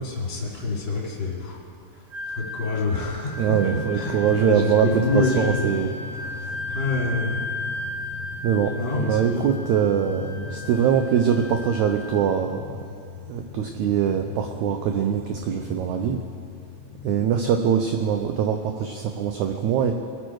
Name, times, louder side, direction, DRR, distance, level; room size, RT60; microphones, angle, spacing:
voice 1, 0.0-1.6 1.9-6.1 6.7-7.4 8.7-9.5, left 3 dB, 35° left, -4 dB, 3.5 m, -27 dB
Wind instrument woodwind instrument, 2.1-12.5, left 2 dB, 35° right, 2.1 m, -35 dB
voice 2, 3.4-5.9 6.2-6.5 8.4-12.6 13.3-16.2 17.0-19.9, right 8 dB, 80° right, 5 dB, 1.7 m, -23 dB
Drum, 4.1-17.5, left 9 dB, 90° left, 2.3 m, -40 dB
22.0 x 8.8 x 4.7 m, 2.5 s
omnidirectional pair, 4.0 m